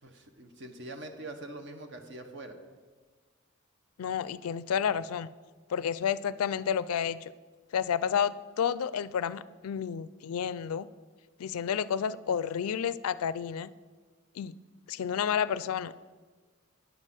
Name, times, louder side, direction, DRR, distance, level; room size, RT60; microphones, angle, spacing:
voice 1, 0.0-2.5, right 2 dB, 55° right, 6 dB, 1.0 m, -43 dB
voice 2, 4.0-5.3 5.7-7.3 7.7-10.9 11.4-13.7 14.4-14.5 14.9-16.0, left 8 dB, 85° left, 17 dB, 0.4 m, -30 dB
9.4 x 6.3 x 7.5 m, 1.4 s
head